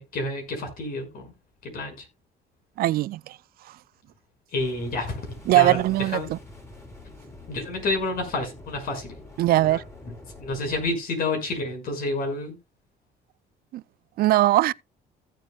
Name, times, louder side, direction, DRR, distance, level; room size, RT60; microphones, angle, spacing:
voice 1, 0.0-1.3 1.6-2.1 4.5-5.2 5.5-6.3 7.5-9.1 9.6-9.8 10.4-12.6, left 2 dB, 60° left, 5.7 m, -29 dB
voice 2, 2.8-3.4 5.5-6.4 9.4-9.8 13.7-13.8 14.2-14.7, right 16 dB, 60° right, 0.4 m, -20 dB
sound 1, 4.6-10.9, left 2 dB, 15° left, 4.4 m, -46 dB
15.5 x 7.6 x 2.3 m
cardioid pair, 110°, 17 cm